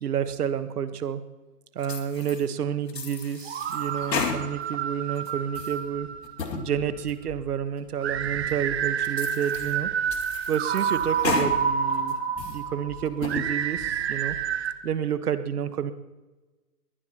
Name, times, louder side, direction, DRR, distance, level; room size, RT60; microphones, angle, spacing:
voice 1, 0.0-1.2 1.7-6.1 6.6-9.9 10.5-12.1 12.5-14.4 14.8-15.9, right 8 dB, 65° right, 11 dB, 1.4 m, -29 dB
sound 1, 1.8-2.4 2.9-4.8 5.2-5.8 6.2-6.7 7.1-7.2 7.8-7.9 8.5-8.6 9.0-9.7 10.1-11.5 11.9-12.6 13.1-13.5, left 5 dB, 90° left, 2.4 m, -33 dB
sound 2, 3.5-6.6 8.0-14.7, right 7 dB, 40° right, 1.1 m, -29 dB
sound 3, 6.7-15.0, left 4 dB, 20° left, 1.8 m, -48 dB
21.5 x 19.0 x 2.9 m, 1.2 s
hypercardioid pair, 160°, 48 cm